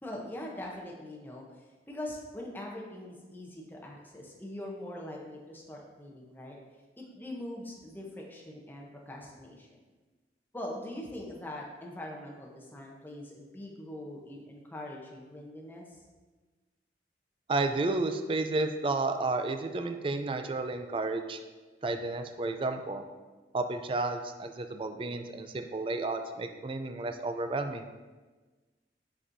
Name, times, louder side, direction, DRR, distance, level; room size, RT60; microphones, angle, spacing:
voice 1, 0.0-6.6 7.0-9.8 10.5-16.0, left 1 dB, 10° left, -2 dB, 0.7 m, -42 dB
voice 2, 17.5-21.4 21.8-23.0 23.5-27.9, right 3 dB, 30° right, 7 dB, 0.3 m, -32 dB
6.3 x 6.0 x 2.6 m, 1.3 s
head